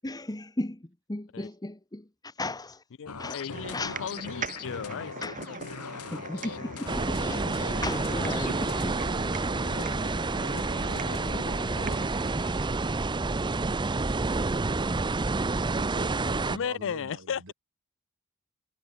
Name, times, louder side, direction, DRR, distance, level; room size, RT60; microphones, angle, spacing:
voice 1, 0.0-2.8 3.2-4.0 5.2-5.4 6.1-9.0 10.9-11.0, left 2 dB, 15° left, 1.1 m, -36 dB
voice 2, 3.0-5.6 16.5-17.5, left 7 dB, 60° left, 0.5 m, -35 dB
sound 1, 3.1-12.1, left 5 dB, 90° left, 1.3 m, -41 dB
sound 2, 3.5-13.1, right 4 dB, 35° right, 1.7 m, -42 dB
sound 3, 6.9-16.6, right 3 dB, 20° right, 0.6 m, -29 dB
voice 3, 15.7-17.5, right 2 dB, 60° right, 4.7 m, -44 dB
head